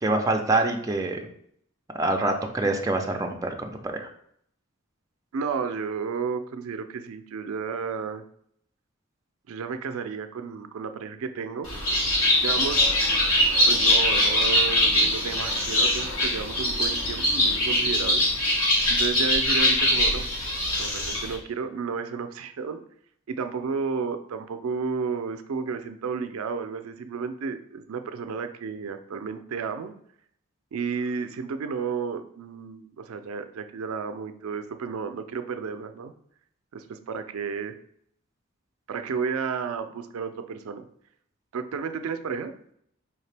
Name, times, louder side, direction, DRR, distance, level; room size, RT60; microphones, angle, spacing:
voice 1, 0.0-1.2 1.9-4.1, right 2 dB, 15° right, 2 dB, 0.4 m, -25 dB
voice 2, 5.3-8.2 9.5-11.7 12.4-13.0 13.7-18.4 18.9-20.3 20.8-22.8 23.3-29.9 30.7-36.1 36.7-37.7 38.9-40.8 41.5-42.5, right 5 dB, 80° right, 9 dB, 0.4 m, -32 dB
Bird, 11.6-21.3, left 1 dB, 80° left, 1.7 m, -22 dB
4.8 x 2.8 x 3.3 m, 0.68 s
head